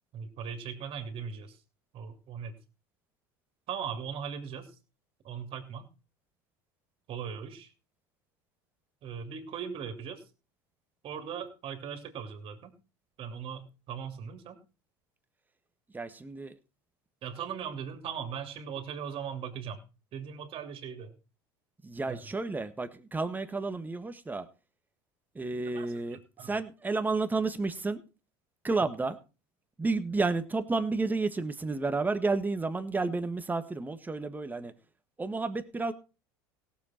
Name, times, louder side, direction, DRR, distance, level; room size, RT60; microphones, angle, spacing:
voice 1, 0.1-1.6 1.9-2.5 3.7-4.7 5.2-5.9 7.1-7.7 9.0-10.2 11.0-12.8 13.2-14.6 17.2-19.8 20.1-21.1 22.1-22.2 25.7-25.9 26.4-26.5, right 7 dB, 50° right, 7 dB, 2.9 m, -39 dB
voice 2, 15.9-16.6 21.8-24.5 25.3-28.0 28.6-29.2 29.8-34.7 35.2-35.9, right 3 dB, 15° right, 9 dB, 1.5 m, -31 dB
17.5 x 7.4 x 4.4 m, 0.32 s
hypercardioid pair, 90°, 12 cm